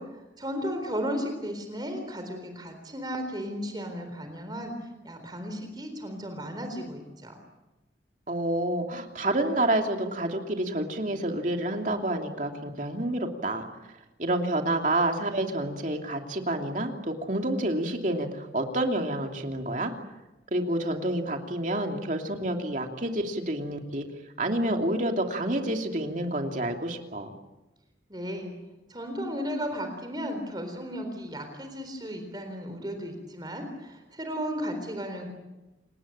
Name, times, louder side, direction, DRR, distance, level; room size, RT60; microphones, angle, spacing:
voice 1, 0.0-7.4 28.1-28.5 28.9-35.3, equal, 25° right, 5 dB, 3.9 m, -35 dB
voice 2, 8.3-13.6 14.2-19.9 20.5-24.1 24.4-27.3, right 1 dB, 45° right, 3 dB, 2.9 m, -28 dB
28.5 x 19.0 x 8.8 m, 1.0 s
head